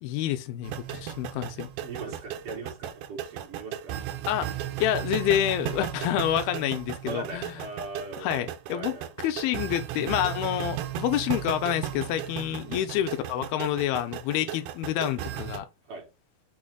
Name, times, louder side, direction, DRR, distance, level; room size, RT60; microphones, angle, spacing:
voice 1, 0.0-1.7 4.3-4.5 4.8-7.5 8.2-15.7, left 11 dB, 85° left, 2.4 m, -28 dB
sound 1, 0.6-15.6, right 12 dB, 85° right, 1.9 m, -35 dB
voice 2, 1.8-3.9 7.0-8.4 8.7-9.1 12.6-13.1 14.4-14.5 15.8-16.1, right 3 dB, 60° right, 1.7 m, -40 dB
6.2 x 2.1 x 3.7 m
omnidirectional pair, 4.3 m